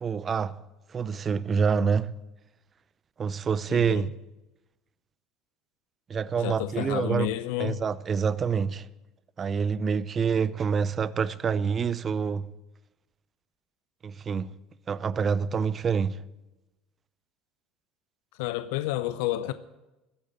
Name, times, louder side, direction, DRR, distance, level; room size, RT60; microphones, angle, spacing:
voice 1, 0.0-0.6 0.9-2.1 3.2-4.1 6.1-7.3 7.6-8.9 9.4-12.5 14.0-14.5 14.9-16.2, right 6 dB, 35° right, 0.6 m, -27 dB
voice 2, 3.7-4.0 6.4-7.8 18.4-19.5, left 15 dB, 75° left, 0.6 m, -30 dB
14.0 x 10.5 x 9.0 m
supercardioid pair, 95°, 0 cm